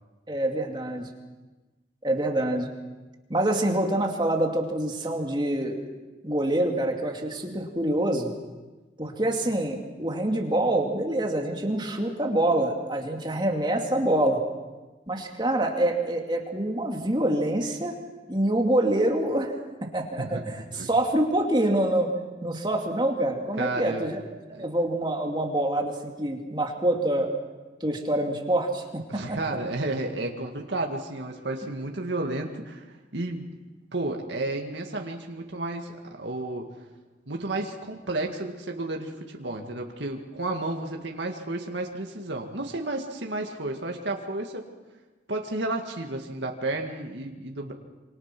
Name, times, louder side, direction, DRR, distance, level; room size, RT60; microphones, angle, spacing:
voice 1, 0.3-1.1 2.0-2.7 3.3-5.8 6.2-8.3 9.0-14.4 15.1-17.9 18.3-19.6 19.9-22.1 22.4-24.2 24.6-27.3 27.8-29.4, right 1 dB, 25° right, 2 dB, 2.5 m, -26 dB
voice 2, 23.6-24.1 24.5-24.7 29.1-33.5 33.9-36.7 37.3-44.6 45.3-47.7, right 2 dB, 75° right, 2 dB, 2.1 m, -32 dB
27.0 x 25.0 x 6.1 m, 1.2 s
head